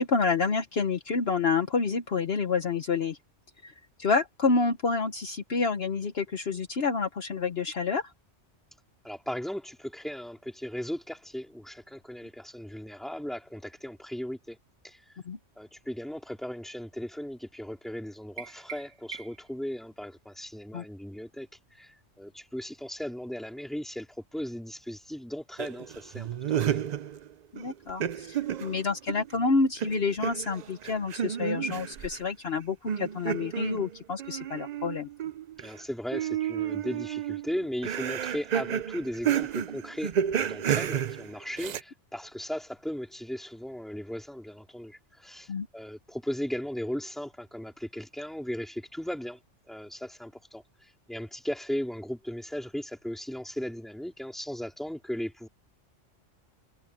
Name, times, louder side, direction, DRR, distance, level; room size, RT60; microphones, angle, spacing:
voice 1, 0.0-3.2 3.6-3.7 4.0-8.1 15.3-15.4 20.7-20.8 27.5-35.1 45.5-45.7, left 4 dB, 55° left, 1.2 m, -28 dB
voice 2, 9.0-14.6 14.8-15.0 15.6-24.1 24.3-26.9 35.6-49.4 49.7-55.5, equal, ahead, 2.7 m, -37 dB
sound 1, 18.4-19.6, right 7 dB, 85° right, 1.5 m, -44 dB
sound 2, 25.6-27.3 27.6-29.4 29.8-32.2 32.9-35.8 36.1-41.8, right 9 dB, 60° right, 0.4 m, -31 dB
omnidirectional pair, 1.2 m